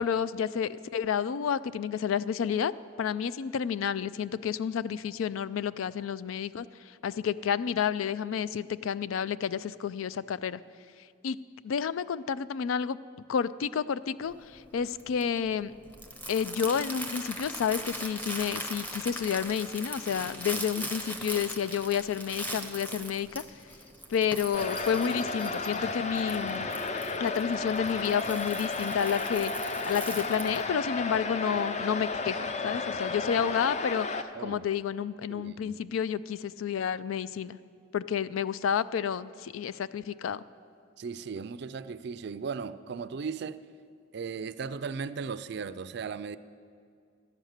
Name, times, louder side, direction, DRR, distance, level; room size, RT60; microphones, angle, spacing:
voice 1, 0.0-2.7 3.0-10.6 11.2-11.4 11.6-13.0 13.3-15.7 16.3-23.4 24.1-26.7 27.2-34.1 34.4-37.6 37.9-40.4, left 7 dB, 85° left, 0.4 m, -30 dB
Crumpling crinkling, 14.2-30.7, equal, 10° left, 0.8 m, -40 dB
sound 1, 24.5-34.2, left 3 dB, 35° left, 0.5 m, -33 dB
voice 2, 35.3-35.7 41.0-43.6 44.1-46.4, right 5 dB, 55° right, 0.4 m, -37 dB
12.5 x 9.1 x 6.5 m
head